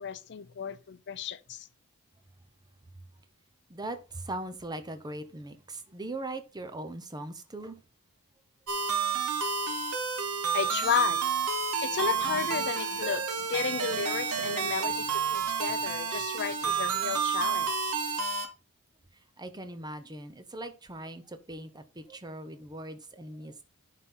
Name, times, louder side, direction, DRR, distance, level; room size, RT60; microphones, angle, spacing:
voice 1, 0.0-1.7 10.5-11.2 11.8-18.0, left 7 dB, 50° left, 0.5 m, -33 dB
voice 2, 3.7-7.8 19.1-23.6, right 1 dB, 20° right, 0.8 m, -40 dB
sound 1, 8.7-18.5, right 6 dB, 80° right, 1.2 m, -30 dB
11.0 x 4.1 x 3.9 m
head